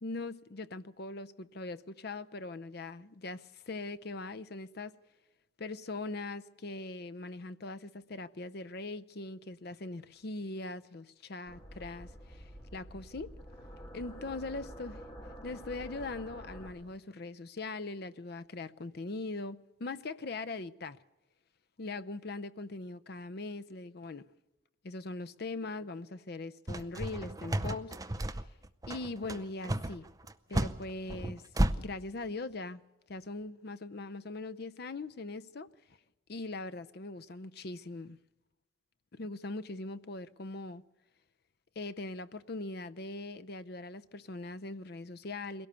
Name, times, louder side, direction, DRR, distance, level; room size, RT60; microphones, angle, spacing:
voice 1, 0.0-5.0 5.6-13.3 13.9-15.0 15.4-21.0 21.8-24.3 24.8-28.0 28.2-28.4 28.9-30.1 30.5-31.4 31.7-32.8 33.1-35.7 36.3-38.2 39.1-40.8 41.8-45.7, left 2 dB, 50° left, 0.6 m, -41 dB
sound 1, 11.5-16.7, equal, 25° left, 3.1 m, -48 dB
sound 2, 26.7-31.7, right 1 dB, 20° right, 0.6 m, -32 dB
22.0 x 17.5 x 6.8 m
head